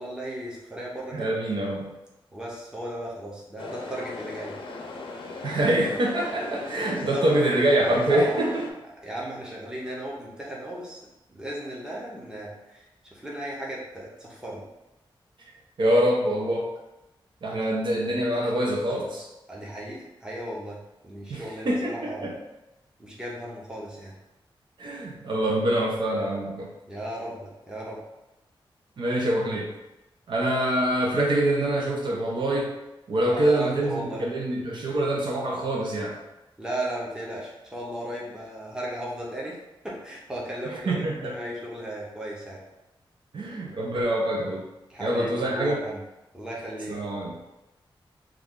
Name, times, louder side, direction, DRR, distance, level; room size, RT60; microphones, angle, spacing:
voice 1, 0.0-1.4 2.3-4.5 6.9-7.3 8.1-8.3 9.0-11.0 11.3-12.8 13.1-14.6 19.5-20.8 21.0-22.3 23.0-24.1 26.9-28.0 33.3-34.2 36.6-39.6 39.8-42.6 44.9-46.0 46.3-47.0, right 1 dB, 10° right, -5 dB, 0.7 m, -35 dB
voice 2, 1.1-2.0 5.4-8.6 15.8-16.7 17.4-19.3 21.3-22.4 24.8-26.7 29.0-29.7 30.3-32.7 33.1-36.1 40.9-41.3 43.3-44.7 45.0-45.8 46.9-47.4, right 1 dB, 60° right, -2 dB, 0.6 m, -25 dB
sound 1, 3.6-8.7, left 3 dB, 75° left, 0.5 m, -38 dB
3.2 x 2.3 x 3.7 m, 0.96 s
wide cardioid pair, 175°, 9 cm